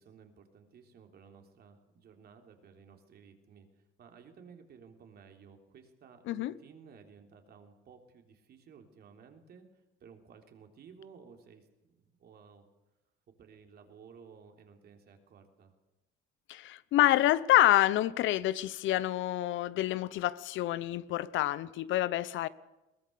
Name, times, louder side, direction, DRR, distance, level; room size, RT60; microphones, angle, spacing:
voice 1, 0.0-9.7 10.0-12.6 13.4-15.7, right 6 dB, 50° right, 3.4 m, -56 dB
voice 2, 16.5-22.5, left 14 dB, 70° left, 0.9 m, -27 dB
22.0 x 19.5 x 6.9 m
cardioid pair, 130°, 20 cm